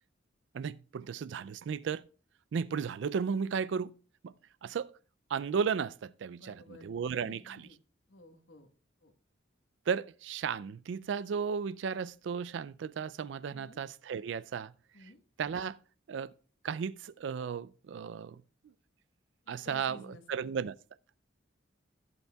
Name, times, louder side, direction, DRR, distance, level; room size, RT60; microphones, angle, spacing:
voice 1, 0.5-2.1 2.5-4.0 4.2-4.3 4.6-4.9 5.3-7.7 9.9-14.7 15.4-15.8 16.1-16.3 16.6-18.4 19.5-20.7, right 6 dB, 70° right, 0.3 m, -34 dB
voice 2, 6.4-6.9 7.2-7.8 8.1-8.7 9.0-9.1 13.5-13.8 14.9-15.2 19.5-20.5, left 2 dB, 80° left, 1.3 m, -54 dB
16.5 x 8.1 x 2.3 m
head